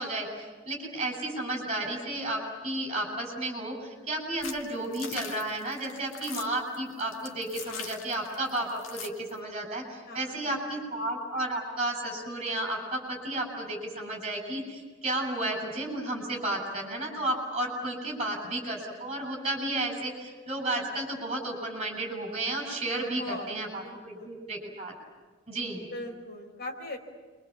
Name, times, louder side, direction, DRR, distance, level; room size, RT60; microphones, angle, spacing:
voice 1, 0.0-24.9 25.5-25.9, right 1 dB, 30° right, 2 dB, 7.7 m, -33 dB
sound 1, 4.4-9.3, left 6 dB, 70° left, 2.0 m, -41 dB
voice 2, 10.1-10.8 22.9-23.6 23.8-24.4 25.9-27.0, left 1 dB, 50° left, 2 dB, 4.8 m, -40 dB
28.5 x 24.5 x 7.5 m, 1.4 s
head